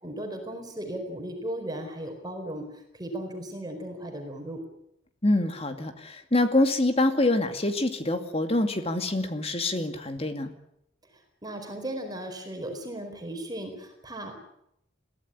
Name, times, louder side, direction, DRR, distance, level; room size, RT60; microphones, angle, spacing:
voice 1, 0.0-4.6 11.1-14.4, right 1 dB, 20° right, 4 dB, 4.4 m, -36 dB
voice 2, 5.2-10.5, left 2 dB, 30° left, 7 dB, 2.3 m, -25 dB
22.5 x 16.0 x 10.0 m, 0.77 s
head